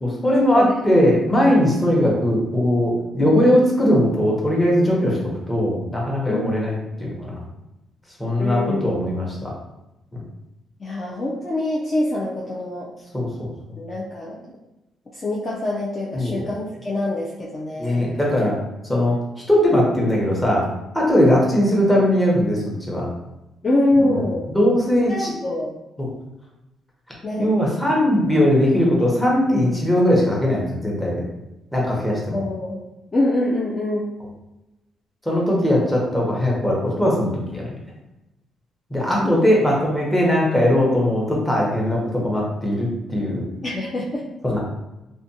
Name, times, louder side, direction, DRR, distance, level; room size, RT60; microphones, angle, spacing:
voice 1, 0.0-5.2 5.5-7.4 8.2-9.5 13.1-13.5 16.1-16.4 17.8-18.5 18.9-19.2 19.5-20.7 20.9-23.1 24.0-24.2 24.5-25.3 26.0-26.1 27.4-31.3 31.7-32.4 35.3-37.8 38.9-43.4 44.4-44.6, left 1 dB, 10° left, -3 dB, 0.9 m, -19 dB
voice 2, 6.3-6.7 8.4-9.1 10.8-12.9 13.8-14.5 15.1-18.1 23.6-24.4 25.1-25.7 27.2-27.5 32.3-32.8 33.1-34.1 39.2-39.4 43.6-44.2, left 1 dB, 30° left, -4 dB, 0.4 m, -24 dB
2.4 x 2.2 x 2.7 m, 0.95 s
cardioid pair, 90°, 0 cm